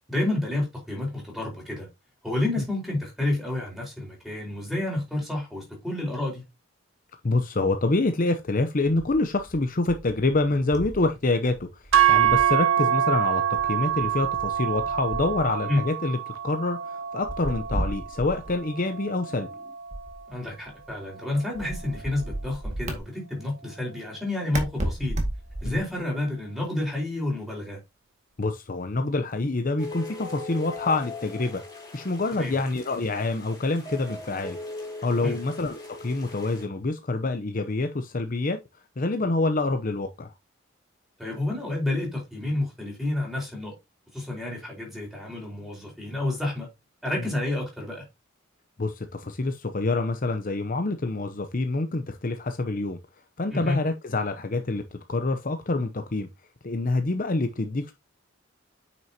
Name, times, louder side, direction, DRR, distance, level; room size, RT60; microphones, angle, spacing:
voice 1, 0.1-1.9 2.2-6.4 15.7-15.8 20.3-25.2 25.6-27.8 32.3-32.6 35.2-35.4 41.2-43.7 44.1-46.7 47.0-48.0 53.5-53.8, left 2 dB, ahead, 4.6 m, -29 dB
voice 2, 7.2-11.7 12.1-16.2 16.4-19.5 25.6-25.8 28.4-31.6 31.9-34.6 35.0-38.6 39.0-40.3 48.8-53.0 53.4-54.8 55.1-56.3 56.6-57.9, left 2 dB, 40° left, 0.7 m, -26 dB
sound 1, 9.0-11.2 11.4-12.7 13.6-15.7 17.2-18.6 19.9-21.0 21.5-23.0 24.5-26.0, right 1 dB, 35° right, 2.0 m, -34 dB
sound 2, 11.9-20.2, right 10 dB, 80° right, 0.7 m, -26 dB
sound 3, 29.8-36.6, left 2 dB, 20° left, 3.6 m, -39 dB
9.1 x 6.1 x 2.9 m
head